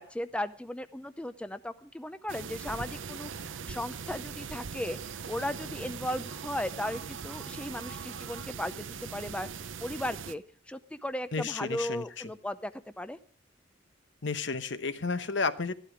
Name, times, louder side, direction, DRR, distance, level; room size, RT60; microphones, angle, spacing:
voice 1, 0.0-13.2, left 1 dB, 5° left, 11 dB, 0.5 m, -36 dB
sound 1, 2.3-10.3, right 6 dB, 85° right, 0.8 m, -40 dB
voice 2, 11.3-12.0 14.2-15.7, left 4 dB, 65° left, 11 dB, 1.0 m, -31 dB
14.0 x 12.0 x 5.0 m, 0.44 s
head